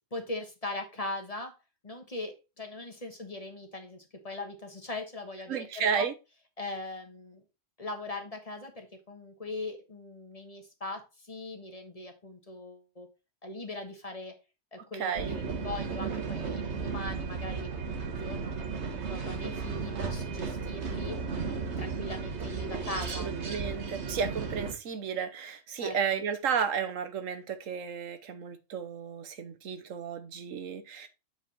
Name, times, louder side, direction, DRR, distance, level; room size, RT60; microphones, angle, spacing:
voice 1, 0.1-1.5 1.8-6.0 6.6-7.4 7.8-13.1 13.4-14.3 14.7-17.7 18.0-21.2 21.8-23.3 25.8-26.2, left 2 dB, 30° left, 1.4 m, -40 dB
voice 2, 5.5-6.1 14.9-15.4 23.2-31.1, right 6 dB, 85° right, 1.3 m, -33 dB
sound 1, 15.2-24.7, right 5 dB, 60° right, 1.5 m, -34 dB
7.6 x 5.0 x 4.2 m
omnidirectional pair, 1.3 m